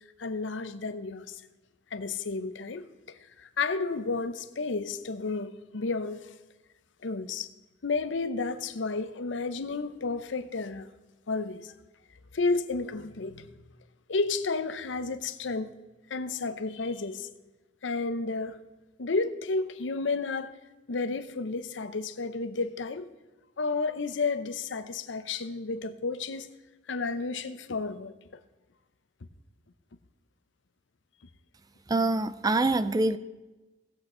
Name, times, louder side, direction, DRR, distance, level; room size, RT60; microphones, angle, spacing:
voice 1, 0.2-1.4 1.9-6.3 7.0-7.5 7.8-10.9 11.3-11.7 12.3-13.5 14.1-15.7 16.1-17.3 17.8-18.6 19.0-20.6 20.9-23.1 23.6-26.5 26.9-28.1, left 3 dB, 85° left, 0.7 m, -32 dB
voice 2, 31.9-33.2, right 2 dB, 20° right, 0.4 m, -25 dB
17.5 x 8.0 x 3.8 m
head